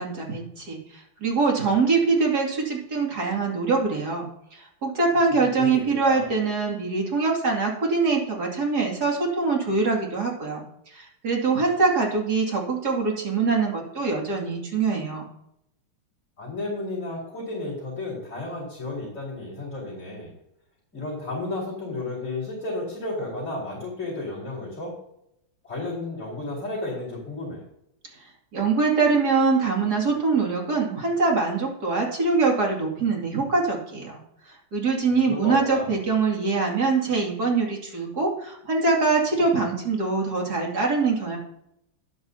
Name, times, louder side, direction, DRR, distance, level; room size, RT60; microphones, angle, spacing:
voice 1, 0.0-4.3 4.5-15.3 28.5-34.2 34.7-41.4, right 4 dB, 45° right, -1 dB, 3.0 m, -23 dB
voice 2, 5.3-6.2 16.4-20.3 20.9-24.9 25.6-27.6 35.3-35.9, left 2 dB, 35° left, -8 dB, 4.6 m, -32 dB
13.5 x 10.0 x 2.8 m, 0.76 s
omnidirectional pair, 2.4 m